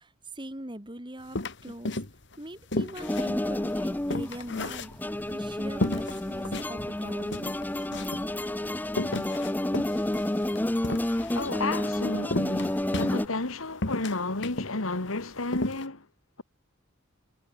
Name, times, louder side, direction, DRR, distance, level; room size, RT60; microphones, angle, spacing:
voice 1, 0.0-2.0 2.4-4.9 5.3-7.4, right 1 dB, 25° right, 2.4 m, -41 dB
sound 1, 1.3-2.4 2.7-5.3 5.8-6.7 7.0-7.1 7.3-8.3 8.9-11.5 12.3-13.5 13.8-14.8 15.1-15.2 15.5-15.8, left 2 dB, 60° left, 1.9 m, -33 dB
sound 2, 3.0-13.3, left 1 dB, 10° left, 0.5 m, -30 dB
voice 2, 11.3-16.1, left 3 dB, 80° left, 2.1 m, -32 dB
head